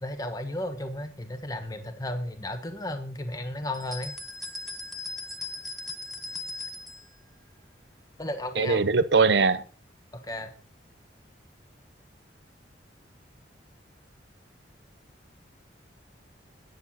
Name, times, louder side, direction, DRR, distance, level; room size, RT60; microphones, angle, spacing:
voice 1, 0.0-4.1 8.2-8.8 10.2-10.5, left 1 dB, 20° left, 1.3 m, -34 dB
sound 1, 3.7-7.1, left 2 dB, ahead, 0.9 m, -38 dB
voice 2, 8.6-9.6, right 4 dB, 65° right, 0.8 m, -21 dB
9.9 x 8.1 x 5.6 m
head